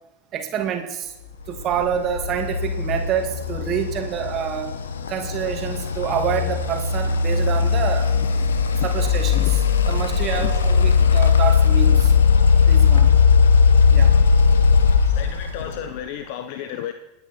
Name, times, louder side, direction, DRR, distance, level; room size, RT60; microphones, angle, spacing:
voice 1, 0.3-1.1 1.5-4.7 5.1-8.1 8.8-9.6 9.9-12.1 12.7-13.1 13.9-14.1, right 8 dB, 40° right, 5 dB, 2.3 m, -27 dB
sound 1, 1.5-16.0, left 6 dB, 75° left, 1.3 m, -18 dB
voice 2, 8.5-8.9 9.3-9.5 10.2-10.6 15.1-16.9, left 10 dB, 55° left, 10 dB, 0.9 m, -33 dB
28.0 x 9.6 x 4.4 m, 0.97 s
figure-of-eight pair, 80°, 0 cm